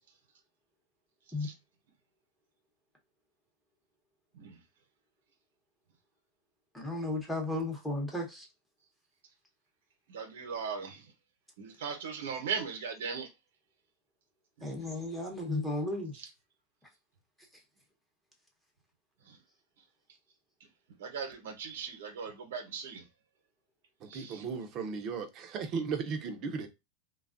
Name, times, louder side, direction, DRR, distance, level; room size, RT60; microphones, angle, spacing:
voice 1, 6.7-8.5 14.6-16.2, left 2 dB, 5° left, 0.9 m, -34 dB
voice 2, 10.1-11.1 11.6-13.3 14.6-14.7 19.3-19.4 21.0-23.0 24.1-24.5, right 6 dB, 85° right, 0.8 m, -38 dB
voice 3, 24.0-26.7, right 5 dB, 40° right, 0.6 m, -36 dB
3.2 x 2.3 x 2.4 m
supercardioid pair, 135°, 0 cm